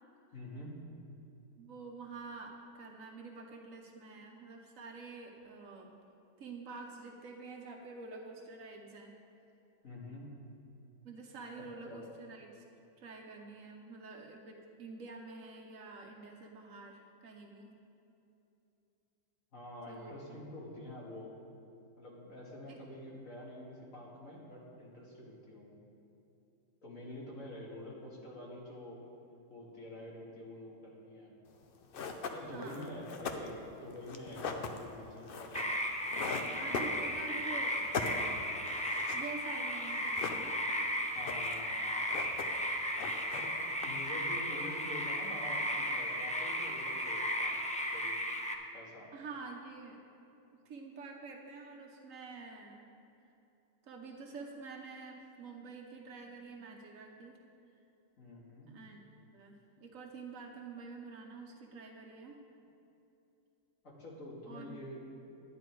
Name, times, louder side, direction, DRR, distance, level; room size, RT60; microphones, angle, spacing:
voice 1, 0.3-0.8 9.8-10.3 11.6-12.1 19.5-21.3 22.0-25.8 26.8-29.0 29.5-31.3 32.3-35.6 36.0-36.7 41.1-42.1 43.3-43.5 43.8-47.6 47.9-48.2 48.7-49.1 58.2-58.7 63.8-65.0, left 1 dB, 85° left, -4 dB, 2.3 m, -47 dB
voice 2, 1.6-5.9 6.4-9.2 11.0-12.6 13.0-17.8 19.9-20.2 22.7-22.8 32.5-32.9 36.2-38.4 39.1-40.7 43.0-43.2 49.1-50.0 50.7-52.8 53.8-57.4 58.7-59.0 59.3-62.3 64.5-64.8, right 4 dB, 85° right, 1 dB, 1.3 m, -48 dB
sound 1, 31.5-31.6 31.9-37.4 37.7-39.3 39.6-39.7 39.9-40.8 41.1-41.7 41.9-42.7 42.9-44.2, left 5 dB, 50° left, 0.8 m, -40 dB
sound 2, 35.5-48.5, equal, 10° left, 0.4 m, -35 dB
11.0 x 10.0 x 4.6 m, 2.8 s
omnidirectional pair, 1.3 m